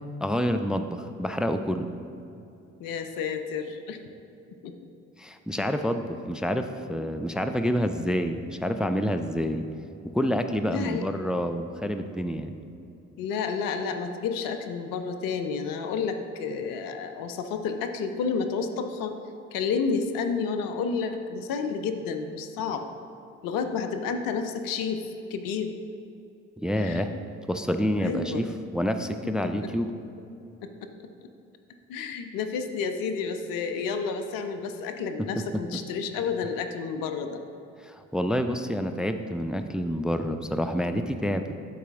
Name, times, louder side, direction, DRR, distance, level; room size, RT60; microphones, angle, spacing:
voice 1, 0.2-1.9 5.2-9.7 10.0-12.6 26.6-27.1 27.5-28.5 28.7-29.9 35.5-35.6 37.8-41.4, equal, ahead, 8 dB, 0.3 m, -28 dB
voice 2, 2.8-4.0 4.6-4.7 5.6-5.7 10.7-11.0 13.2-19.1 19.5-22.8 23.4-25.7 26.8-27.0 27.9-28.4 29.6-29.7 30.6-30.7 31.9-37.4, left 5 dB, 60° left, 7 dB, 0.7 m, -30 dB
11.5 x 4.1 x 3.6 m, 2.7 s
figure-of-eight pair, 40°, 39 cm